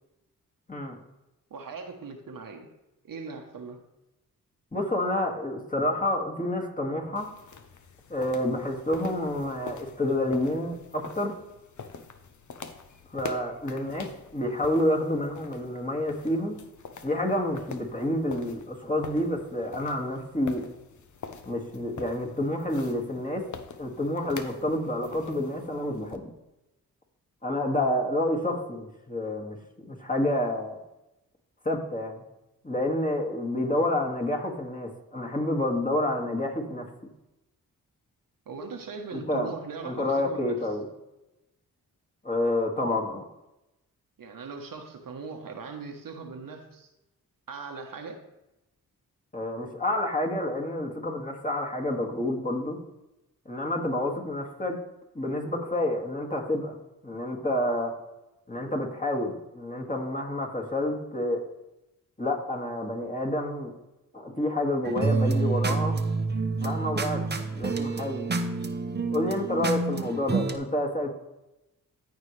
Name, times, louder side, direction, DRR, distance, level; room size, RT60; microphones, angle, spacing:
voice 1, 1.5-2.7 3.0-3.8 38.5-40.6 44.2-46.9 47.5-48.2, right 4 dB, 65° right, 4 dB, 1.2 m, -39 dB
voice 2, 4.7-7.3 8.1-11.4 13.1-16.6 17.0-20.6 21.5-23.4 23.8-26.2 27.4-29.6 29.8-30.7 31.6-32.2 32.6-36.9 39.1-39.5 39.8-40.8 42.2-43.2 49.3-52.8 53.5-54.8 55.1-56.7 57.0-57.9 58.5-61.5 62.2-63.7 64.1-66.0 66.6-67.2 67.5-68.2 69.1-71.2, left 1 dB, 20° left, -1 dB, 2.1 m, -29 dB
sound 1, 7.2-26.2, left 5 dB, 55° left, 0.9 m, -45 dB
sound 2, 64.8-70.6, right 3 dB, 30° right, 0.9 m, -28 dB
14.0 x 4.6 x 3.3 m, 0.95 s
supercardioid pair, 45°, 37 cm